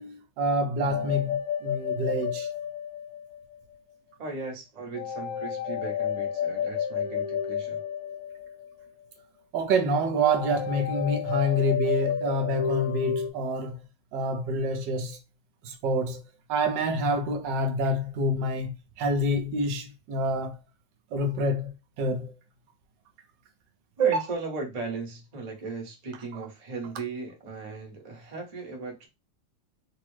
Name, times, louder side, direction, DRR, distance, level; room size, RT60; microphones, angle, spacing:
voice 1, 0.0-2.5 9.5-13.8 14.1-15.2 15.6-16.2 16.5-20.6 21.1-22.3 24.0-24.2, right 1 dB, 75° right, 1.2 m, -27 dB
sound 1, 0.9-3.6 5.0-8.9 10.2-13.3, left 8 dB, 65° left, 0.9 m, -31 dB
voice 2, 4.2-7.8 24.0-29.1, right 3 dB, 45° right, 0.5 m, -37 dB
3.5 x 2.0 x 3.1 m
omnidirectional pair, 2.1 m